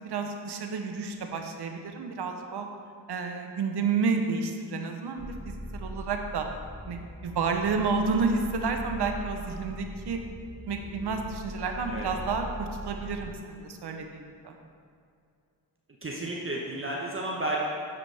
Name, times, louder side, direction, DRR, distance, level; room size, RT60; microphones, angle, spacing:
voice 1, 0.0-2.7 3.1-6.5 6.8-10.2 10.7-14.5, right 4 dB, 65° right, 4 dB, 0.9 m, -30 dB
sound 1, 5.2-13.3, equal, 10° left, 1.9 m, -40 dB
voice 2, 16.0-17.6, right 1 dB, 30° right, -3 dB, 1.1 m, -32 dB
9.8 x 5.0 x 3.4 m, 2.3 s
supercardioid pair, 50°, 43 cm